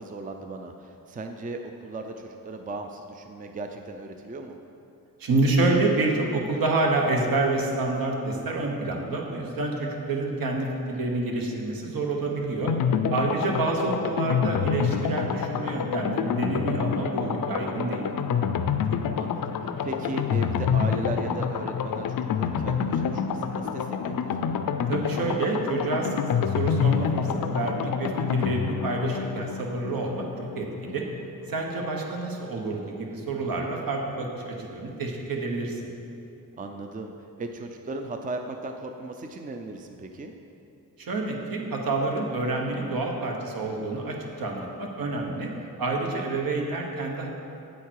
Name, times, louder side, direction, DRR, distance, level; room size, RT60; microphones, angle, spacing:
voice 1, 0.0-4.6 13.2-13.5 18.0-18.1 18.8-24.4 36.6-37.1 37.4-40.3, right 2 dB, 25° right, 5 dB, 0.5 m, -37 dB
voice 2, 5.2-12.7 13.1-18.1 24.9-26.2 26.5-31.1 31.5-35.9 41.0-45.5 45.8-47.3, right 2 dB, 70° right, 0 dB, 1.4 m, -28 dB
sound 1, 12.7-31.3 31.6-31.7 31.9-32.0, left 7 dB, 65° left, 0.5 m, -27 dB
8.4 x 8.2 x 4.7 m, 2.8 s
wide cardioid pair, 125°, 36 cm